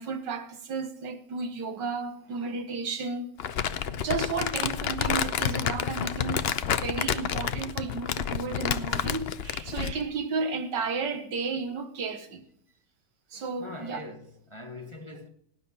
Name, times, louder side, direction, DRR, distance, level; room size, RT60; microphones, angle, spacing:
voice 1, 0.0-12.4 13.3-14.0, right 4 dB, 80° right, 2.0 m, -33 dB
Crumpling crinkling, 3.4-10.0, left 8 dB, 65° left, 0.6 m, -29 dB
voice 2, 13.6-15.3, left 2 dB, 20° left, 0.8 m, -42 dB
18.0 x 9.6 x 4.2 m
omnidirectional pair, 1.9 m